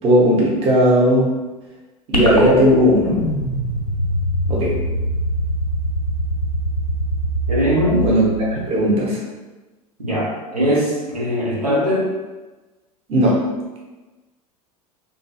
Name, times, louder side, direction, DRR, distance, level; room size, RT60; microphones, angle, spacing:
voice 1, 0.0-1.3 2.1-3.2 4.5-4.7 8.0-8.3 8.5-9.2 13.1-13.5, equal, 30° right, -4 dB, 0.8 m, -16 dB
sound 1, 2.1-8.6, equal, 90° left, 0.5 m, -23 dB
voice 2, 7.5-8.1 10.0-12.1, equal, 85° right, -6 dB, 0.7 m, -20 dB
2.6 x 2.6 x 2.2 m, 1.2 s
figure-of-eight pair, 80°, 19 cm